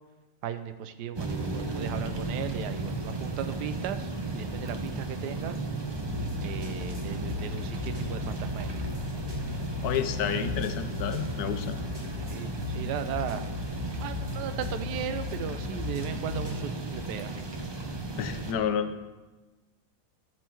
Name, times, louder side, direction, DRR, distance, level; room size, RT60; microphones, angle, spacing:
voice 1, 0.4-5.7 6.4-8.8 12.3-13.5 14.0-17.4, right 9 dB, 85° right, 11 dB, 1.2 m, -37 dB
sound 1, 1.1-18.5, right 2 dB, 35° right, 0.4 m, -35 dB
sound 2, 6.0-16.6, left 5 dB, 15° right, 1.8 m, -37 dB
voice 2, 9.8-11.7 18.2-19.0, left 8 dB, 75° left, 9 dB, 1.1 m, -30 dB
13.5 x 4.6 x 4.5 m, 1.2 s
omnidirectional pair, 1.7 m